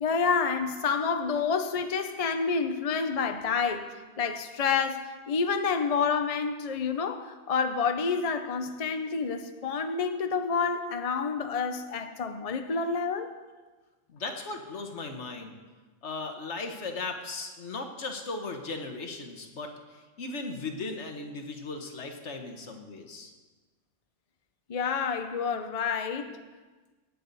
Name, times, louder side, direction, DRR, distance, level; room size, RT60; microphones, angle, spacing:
voice 1, 0.0-13.3 24.7-26.4, left 5 dB, 40° left, 7 dB, 0.6 m, -28 dB
voice 2, 14.1-15.6 16.0-23.3, left 3 dB, 60° left, 4 dB, 1.5 m, -37 dB
17.5 x 8.4 x 4.1 m, 1.3 s
omnidirectional pair, 1.3 m